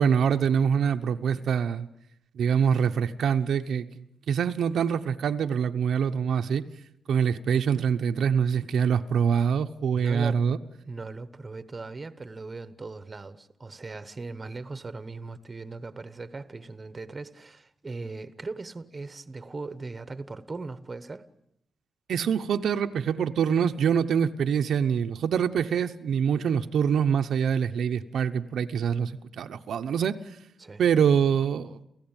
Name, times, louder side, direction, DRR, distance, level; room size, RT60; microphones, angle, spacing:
voice 1, 0.0-1.9 2.3-6.6 7.1-10.6 22.1-30.2 30.8-31.8, right 7 dB, 80° right, 0.9 m, -25 dB
voice 2, 9.9-21.3 30.6-30.8, right 3 dB, 25° right, 1.2 m, -39 dB
29.5 x 15.5 x 8.9 m
wide cardioid pair, 130°, 0 cm